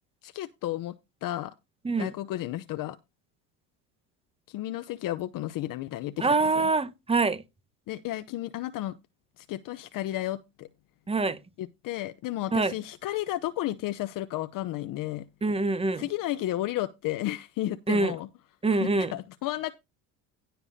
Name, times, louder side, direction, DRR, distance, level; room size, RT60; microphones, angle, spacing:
voice 1, 0.2-0.9 1.2-1.5 2.0-3.0 4.5-6.3 7.9-9.0 9.4-10.7 11.6-15.3 16.0-18.3 18.8-19.7, left 14 dB, 55° left, 0.8 m, -32 dB
voice 2, 6.2-7.4 11.1-11.4 12.5-12.7 15.4-16.0 17.9-18.1 18.6-19.1, right 3 dB, 15° right, 1.1 m, -25 dB
16.0 x 6.8 x 2.7 m
supercardioid pair, 95°, 39 cm